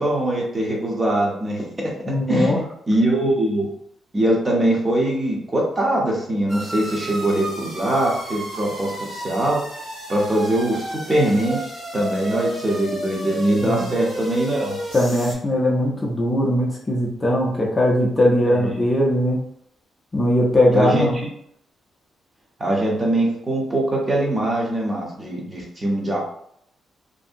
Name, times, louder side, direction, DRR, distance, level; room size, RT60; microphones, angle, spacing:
voice 1, 0.0-1.9 2.3-2.5 2.9-3.7 4.1-9.6 10.1-11.6 11.9-14.8 18.5-18.8 20.7-21.1 22.6-26.2, right 1 dB, 20° right, -1 dB, 0.6 m, -22 dB
voice 2, 2.0-2.6 13.6-13.9 14.9-19.4 20.1-21.2, left 1 dB, 20° left, -3 dB, 0.4 m, -20 dB
sound 1, 6.5-15.3, right 1 dB, 40° right, 1.3 m, -33 dB
2.6 x 2.6 x 2.6 m, 0.70 s
cardioid pair, 160°, 0 cm